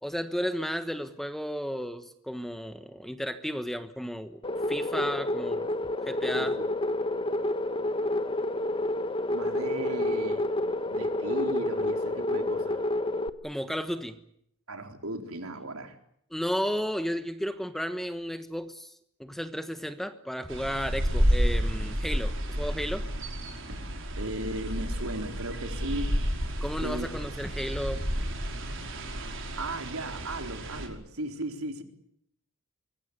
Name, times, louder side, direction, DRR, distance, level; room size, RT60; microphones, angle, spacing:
voice 1, 0.0-4.4 4.7-5.7 6.0-6.6 13.4-14.2 16.3-18.9 19.2-23.1 26.6-28.0, equal, ahead, 1.2 m, -33 dB
sound 1, 4.4-13.3, left 1 dB, 25° left, 1.2 m, -29 dB
voice 2, 6.3-6.7 9.3-10.5 10.9-12.9 14.7-16.0 24.2-26.2 26.8-27.1 29.6-31.8, right 1 dB, 85° right, 4.1 m, -36 dB
sound 2, 20.5-30.9, equal, 60° right, 5.2 m, -30 dB
24.5 x 22.5 x 8.3 m
head